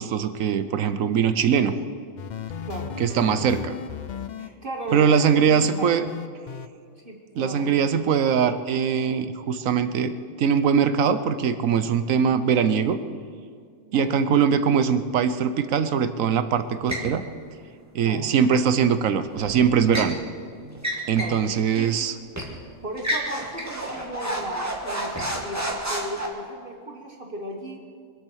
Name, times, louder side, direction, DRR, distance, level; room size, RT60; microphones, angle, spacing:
voice 1, 0.0-1.7 3.0-3.8 4.9-6.0 7.4-10.1 10.4-13.0 13.9-17.3 17.9-20.2 21.1-22.1, right 7 dB, 70° right, 11 dB, 1.2 m, -21 dB
sound 1, 2.2-4.5 4.9-6.7, left 8 dB, 90° left, 0.4 m, -36 dB
voice 2, 2.6-3.0 3.3-3.5 4.4-6.1 7.0-7.7 13.9-14.2 18.0-18.3 20.6-20.9 21.1-21.9 22.8-27.8, right 1 dB, 40° right, 1 dB, 1.7 m, -36 dB
sound 2, 16.9-17.1 19.3-20.1 20.7-21.4 21.7-21.9 22.3-22.6 23.0-26.3, right 1 dB, 10° right, 2.1 m, -30 dB
24.5 x 8.6 x 6.4 m, 2.2 s
omnidirectional pair, 1.5 m